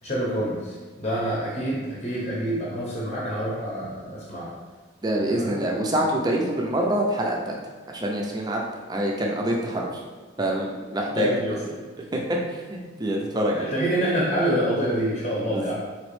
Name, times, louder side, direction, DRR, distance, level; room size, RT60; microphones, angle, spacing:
voice 1, 0.0-4.5 5.3-5.6 11.1-11.6 13.5-15.7, equal, 30° left, -6 dB, 0.8 m, -27 dB
voice 2, 5.0-7.6 7.9-8.6 8.9-10.0 10.4-11.3 12.1-12.4 12.7-13.7 15.5-15.7, right 1 dB, 20° right, -1 dB, 0.4 m, -25 dB
4.0 x 3.0 x 3.2 m, 1.4 s
head